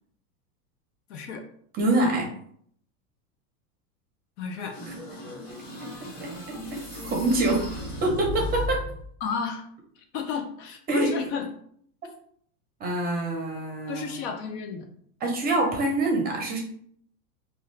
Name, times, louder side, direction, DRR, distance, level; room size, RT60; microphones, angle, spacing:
voice 1, 1.1-1.4 4.4-4.8 9.2-9.6 10.1-11.5 13.9-14.9, left 6 dB, 50° left, 4 dB, 0.5 m, -32 dB
voice 2, 1.8-2.3 4.9-5.0 6.2-6.3 6.7-6.8 7.0-8.8 10.9-11.1 12.8-14.2 15.2-16.6, right 2 dB, 20° right, 0 dB, 0.6 m, -25 dB
sound 1, 4.7-9.1, equal, 20° left, 1.3 m, -35 dB
2.6 x 2.4 x 3.1 m, 0.63 s
supercardioid pair, 130°, 44 cm